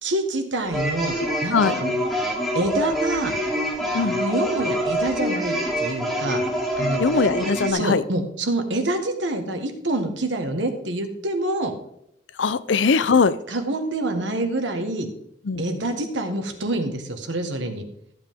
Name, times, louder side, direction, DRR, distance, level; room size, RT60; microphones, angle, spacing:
voice 1, 0.0-1.9 2.5-3.4 4.2-6.4 6.8-7.2 7.7-11.7 13.5-15.1 15.6-17.9, right 1 dB, 90° right, 6 dB, 1.5 m, -26 dB
sound 1, 0.7-7.7, equal, ahead, 2.3 m, -26 dB
voice 2, 7.0-8.0 12.4-13.4 15.5-15.6, left 5 dB, 80° left, 16 dB, 0.6 m, -20 dB
14.0 x 8.1 x 3.7 m, 0.75 s
head